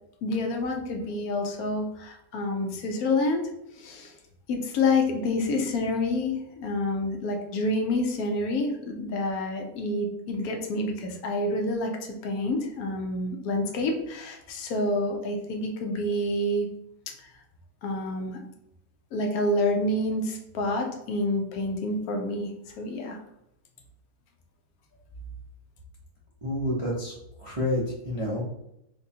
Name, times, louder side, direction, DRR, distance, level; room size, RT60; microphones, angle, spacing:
voice 1, 0.2-4.1 4.5-11.9 12.2-16.7 17.2-17.3 17.8-18.4 19.1-23.2, left 2 dB, 75° left, 3 dB, 1.1 m, -28 dB
voice 2, 26.4-27.1 27.4-28.5, left 1 dB, 35° right, -7 dB, 0.5 m, -29 dB
4.5 x 2.2 x 2.7 m, 0.82 s
omnidirectional pair, 1.6 m